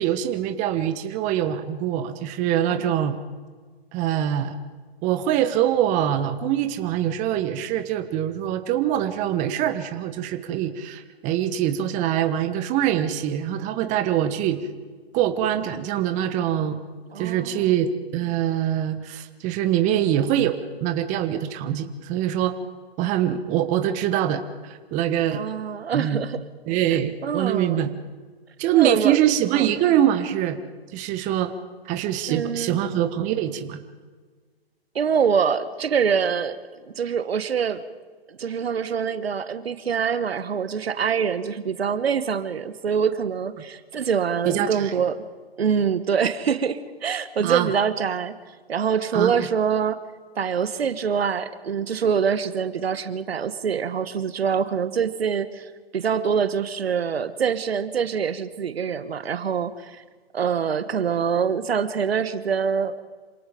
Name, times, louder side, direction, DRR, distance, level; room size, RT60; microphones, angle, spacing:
voice 1, 0.0-3.2 3.9-4.6 5.0-14.6 15.1-16.8 17.2-22.5 23.0-25.4 25.9-26.2 26.7-27.9 28.6-30.6 30.9-31.5 31.8-33.8 44.5-44.9 47.4-47.7 49.1-49.4, right 11 dB, 25° right, 8 dB, 1.3 m, -24 dB
voice 2, 17.1-17.7 25.3-26.4 27.2-27.8 28.7-29.2 29.5-29.7 32.3-32.8 34.9-36.6 37.0-37.8 38.3-45.2 45.6-48.3 48.7-50.0 50.4-60.0 60.3-63.0, right 7 dB, 75° right, 13 dB, 1.4 m, -25 dB
27.0 x 18.5 x 5.2 m, 1.5 s
hypercardioid pair, 135°, 31 cm